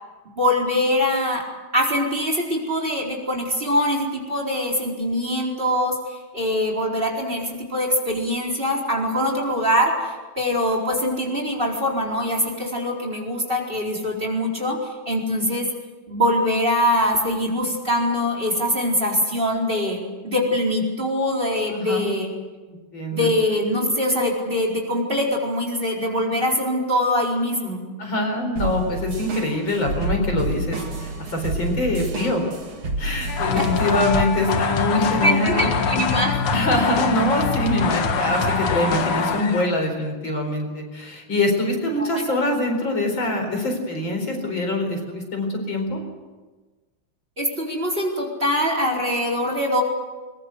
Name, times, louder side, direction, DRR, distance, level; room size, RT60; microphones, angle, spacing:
voice 1, 0.4-1.4 1.7-14.8 15.1-15.7 16.1-22.3 23.1-27.8 33.6-33.7 35.2-36.6 42.0-42.4 47.4-49.8, left 1 dB, 25° right, -1 dB, 4.6 m, -23 dB
voice 2, 21.7-22.1 22.7-23.3 28.0-32.4 33.0-35.7 36.5-46.0, left 1 dB, 60° left, 3 dB, 5.2 m, -24 dB
sound 1, 28.6-34.3, right 2 dB, 85° right, 3.1 m, -29 dB
sound 2, 33.3-39.8, left 5 dB, 85° left, 2.5 m, -24 dB
22.0 x 21.5 x 8.1 m, 1.3 s
omnidirectional pair, 2.4 m